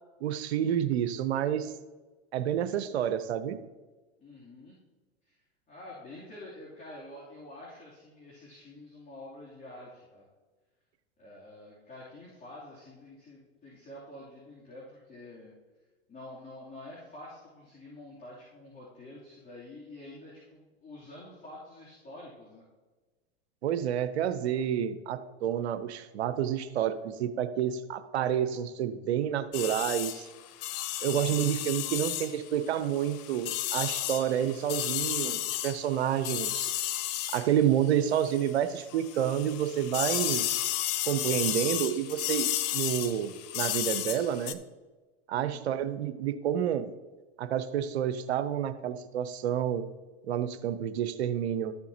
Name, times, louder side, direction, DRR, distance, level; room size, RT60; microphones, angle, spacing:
voice 1, 0.2-1.7 2.3-3.6 23.6-30.3 31.0-36.7 37.3-40.5 41.0-44.6 45.3-46.9 47.4-49.8 50.3-51.7, right 10 dB, 80° right, 11 dB, 0.8 m, -29 dB
voice 2, 4.2-4.7 5.2-5.4 5.7-10.2 11.2-15.5 16.1-22.6 45.3-45.7, left 1 dB, 25° left, -6 dB, 3.1 m, -48 dB
sound 1, 29.5-38.6 38.9-44.5, left 13 dB, 50° left, 0.7 m, -33 dB
13.0 x 7.0 x 2.9 m, 1.3 s
hypercardioid pair, 100°, 32 cm